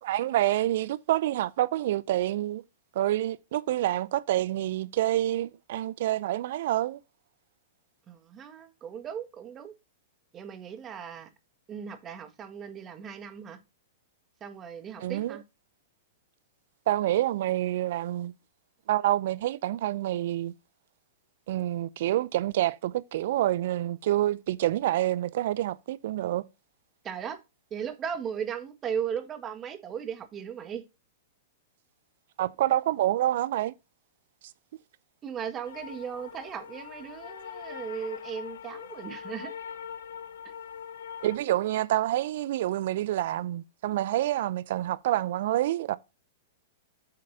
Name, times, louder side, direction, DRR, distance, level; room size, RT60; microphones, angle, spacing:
voice 1, 0.0-2.6 3.0-7.0 15.0-15.4 16.9-18.3 18.9-20.5 21.5-26.4 32.4-33.7 41.2-46.0, right 14 dB, 55° right, 0.5 m, -27 dB
voice 2, 8.1-9.7 10.3-11.3 11.7-13.6 14.4-15.4 27.0-27.4 27.7-30.8 35.2-39.6 40.4-40.5, right 7 dB, 25° right, 1.5 m, -37 dB
sound 1, 35.6-41.4, left 8 dB, 65° left, 0.9 m, -42 dB
7.9 x 7.6 x 2.7 m
figure-of-eight pair, 105°, 0 cm